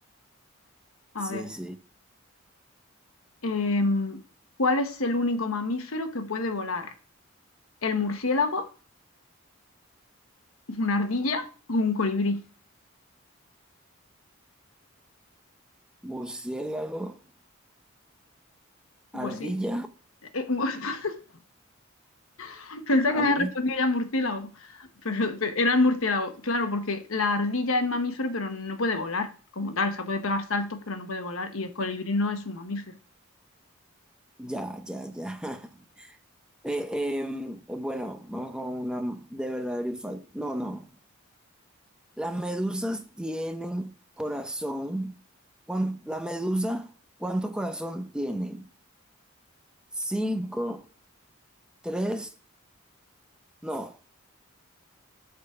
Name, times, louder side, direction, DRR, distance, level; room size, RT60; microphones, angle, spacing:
voice 1, 1.2-1.8 16.0-17.2 19.1-19.9 23.0-23.5 34.4-36.2 36.6-40.9 42.2-45.2 45.7-46.9 47.2-48.7 49.9-50.9 51.8-52.3 53.6-54.0, right 1 dB, 5° right, 0.6 m, -32 dB
voice 2, 3.4-4.2 4.6-6.9 7.8-8.7 10.7-12.4 19.1-19.5 20.3-21.2 22.4-33.0, left 2 dB, 75° left, 1.1 m, -27 dB
8.5 x 4.0 x 6.8 m
head